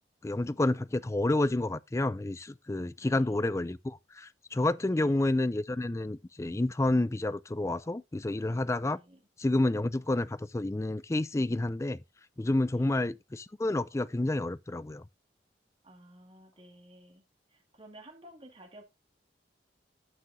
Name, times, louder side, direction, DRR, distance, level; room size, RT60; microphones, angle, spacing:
voice 1, 0.2-9.0 9.4-12.0 12.4-15.0, left 2 dB, 15° left, 0.4 m, -29 dB
voice 2, 3.0-3.4 4.9-5.3 8.8-9.2 12.7-13.1 15.8-17.2 17.5-18.8, right 1 dB, 30° right, 2.3 m, -53 dB
12.0 x 6.6 x 2.7 m
head